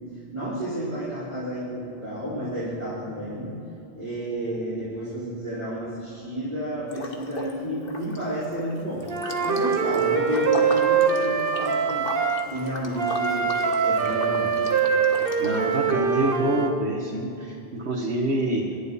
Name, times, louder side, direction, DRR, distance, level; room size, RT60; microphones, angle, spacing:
voice 1, 0.3-3.7 3.9-9.1 9.4-13.5 13.8-14.6, right 1 dB, 40° right, -11 dB, 4.9 m, -31 dB
Liquid, 6.9-7.6 7.8-15.8, left 2 dB, 55° left, 1.6 m, -37 dB
Wind instrument woodwind instrument, 9.1-12.5 13.0-16.7, right 6 dB, 60° right, 1.2 m, -23 dB
voice 2, 15.4-18.7, right 1 dB, 80° right, -1 dB, 1.6 m, -26 dB
26.0 x 11.5 x 4.2 m, 2.8 s
omnidirectional pair, 1.1 m